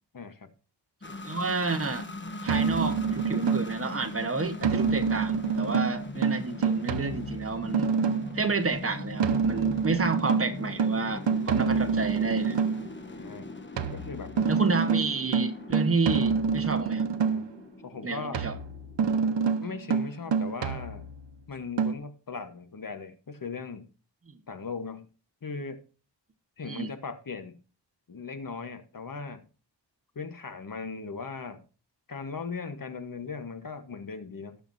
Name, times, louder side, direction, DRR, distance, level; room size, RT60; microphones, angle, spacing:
voice 1, 0.1-0.5 11.6-12.0 13.0-13.5 13.9-14.3 17.3-17.5 17.8-18.4 19.6-21.1 21.5-23.9 24.5-25.1 25.4-25.8 26.6-27.6 28.1-29.5 30.1-31.6 32.1-34.6, left 4 dB, 50° left, 1.3 m, -38 dB
sound 1, 1.0-19.5, left 2 dB, 25° left, 1.2 m, -40 dB
voice 2, 1.2-2.1 2.4-7.9 8.3-12.6 14.5-17.1 18.0-18.6 24.3-24.4 26.6-26.9, right 3 dB, 30° right, 1.3 m, -30 dB
sound 2, 2.5-3.9 4.6-8.4 9.2-12.9 13.8-17.6 18.3-21.3 21.8-21.9, right 5 dB, 80° right, 1.0 m, -27 dB
18.0 x 7.0 x 2.7 m
wide cardioid pair, 115°, 42 cm